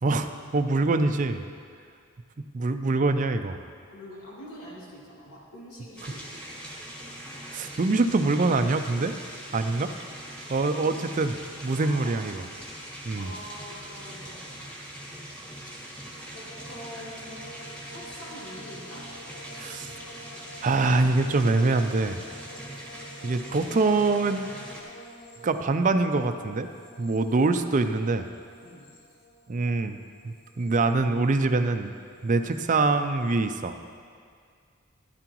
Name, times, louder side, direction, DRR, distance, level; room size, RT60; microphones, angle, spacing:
voice 1, 0.0-1.4 2.4-3.6 6.7-6.8 7.5-9.1 9.5-9.9 10.5-11.4 11.6-12.4 13.1-13.3 19.5-19.9 20.6-22.2 23.2-24.4 25.4-26.7 27.0-28.3 29.5-30.0 30.2-31.9 32.2-33.8, right 3 dB, 35° right, 8 dB, 0.4 m, -24 dB
voice 2, 3.9-6.5 11.7-12.2 13.1-14.7 16.3-19.1 28.6-28.9, equal, 90° left, -6 dB, 2.6 m, -45 dB
sound 1, 6.0-24.8, right 1 dB, 5° left, 1.6 m, -42 dB
sound 2, 16.4-31.7 31.9-32.6, equal, 75° left, 1.6 m, -49 dB
12.5 x 11.5 x 3.0 m, 2.1 s
head